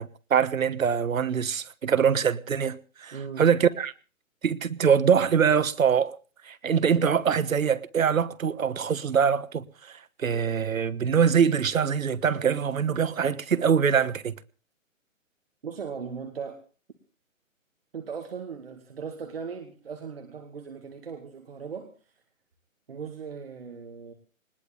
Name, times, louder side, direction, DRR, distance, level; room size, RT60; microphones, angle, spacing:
voice 1, 0.0-3.9 4.4-6.2 6.4-14.3, right 7 dB, 85° right, 1.3 m, -24 dB
voice 2, 3.1-3.4 15.6-16.6 17.9-21.9 22.9-24.1, right 6 dB, 45° right, 2.3 m, -38 dB
20.5 x 18.5 x 3.5 m
hypercardioid pair, 180°, 40 cm